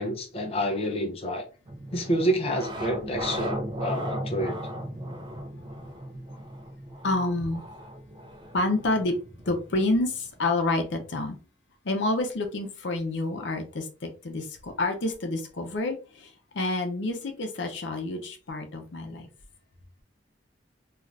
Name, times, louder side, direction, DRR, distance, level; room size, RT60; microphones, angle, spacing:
voice 1, 0.0-1.4 1.9-4.6, equal, 35° left, 0.5 m, -28 dB
sound 1, 1.7-10.4, equal, 25° right, 0.4 m, -37 dB
voice 2, 7.0-7.6 8.5-9.2 9.5-11.4 11.8-19.3, left 2 dB, 70° left, 0.6 m, -28 dB
2.4 x 2.4 x 3.2 m
head